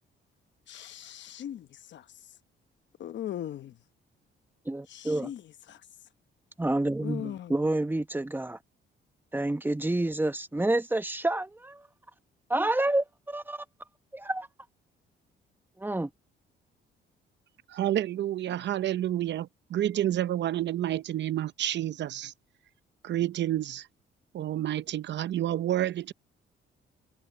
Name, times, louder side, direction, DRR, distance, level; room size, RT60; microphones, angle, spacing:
voice 1, 0.7-2.0 3.0-3.7 4.9-5.8 7.0-7.7, left 11 dB, 65° left, 1.0 m, -39 dB
voice 2, 4.7-5.3 6.6-8.6 9.3-11.8 12.5-13.6 14.1-14.5 15.8-16.1, right 2 dB, 10° right, 1.1 m, -28 dB
voice 3, 17.7-22.3 23.0-23.9 24.3-26.1, right 12 dB, 65° right, 0.8 m, -29 dB
cardioid pair, 90°, 20 cm